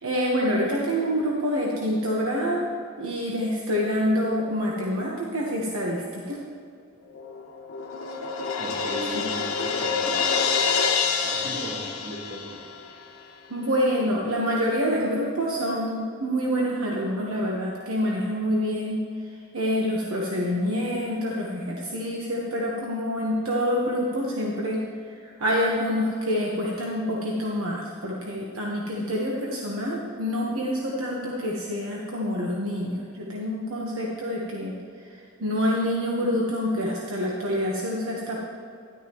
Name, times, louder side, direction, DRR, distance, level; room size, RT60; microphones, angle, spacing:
voice 1, 0.0-2.7 3.0-6.4 9.1-9.2 13.5-19.0 19.5-24.8 25.2-34.8 35.0-38.4, equal, 75° right, -3 dB, 1.3 m, -27 dB
Crash cymbal, 7.2-12.9, left 5 dB, 80° left, 1.1 m, -27 dB
voice 2, 8.6-10.2 11.2-12.6, equal, 40° right, -1 dB, 1.7 m, -37 dB
13.0 x 11.5 x 3.1 m, 2.3 s
head